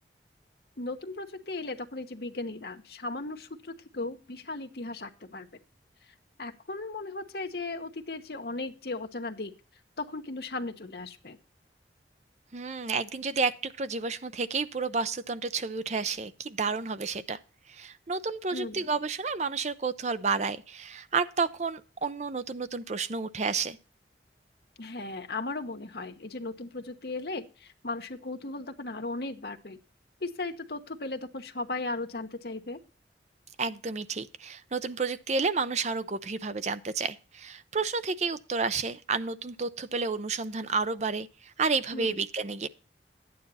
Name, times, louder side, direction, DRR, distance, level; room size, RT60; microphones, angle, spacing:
voice 1, 0.8-5.5 6.4-9.5 10.0-11.4 18.5-18.9 24.8-29.8 30.2-32.8 41.9-42.2, left 2 dB, 60° left, 1.1 m, -36 dB
voice 2, 12.5-17.4 17.7-23.8 33.6-42.7, right 4 dB, 40° right, 0.6 m, -31 dB
11.0 x 9.3 x 4.1 m
head